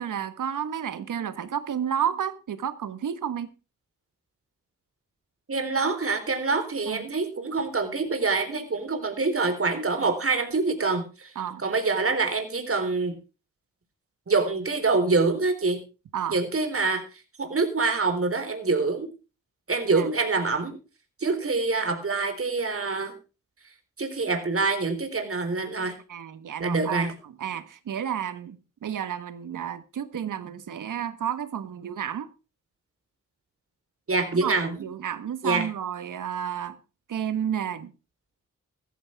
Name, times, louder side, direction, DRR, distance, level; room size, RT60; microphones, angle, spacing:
voice 1, 0.0-3.5 6.9-7.1 10.0-10.1 11.3-11.6 16.1-16.4 19.9-20.1 26.1-32.3 34.3-36.8 37.1-37.9, right 9 dB, 75° right, 1.5 m, -31 dB
voice 2, 5.5-11.3 11.6-13.2 14.3-15.8 16.3-17.0 17.4-19.1 19.7-20.8 21.2-23.2 24.0-26.0 26.6-27.1 34.1-34.7 35.4-35.7, right 3 dB, 45° right, 3.9 m, -25 dB
14.5 x 14.0 x 3.6 m
cardioid pair, 50°, 32 cm